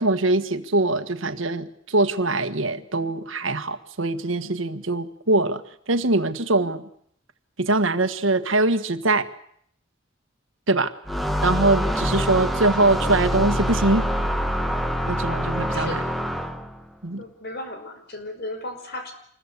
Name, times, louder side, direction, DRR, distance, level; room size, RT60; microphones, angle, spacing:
voice 1, 0.0-5.6 5.9-6.8 7.6-9.3 10.7-10.9 11.4-14.1 15.1-16.0 17.0-17.2, right 2 dB, 80° right, 10 dB, 1.6 m, -22 dB
sound 1, 11.1-16.8, equal, ahead, 1.6 m, -25 dB
voice 2, 12.0-12.3 15.7-16.1 17.2-19.1, left 1 dB, 55° left, 7 dB, 5.4 m, -36 dB
26.5 x 21.5 x 8.4 m, 0.68 s
head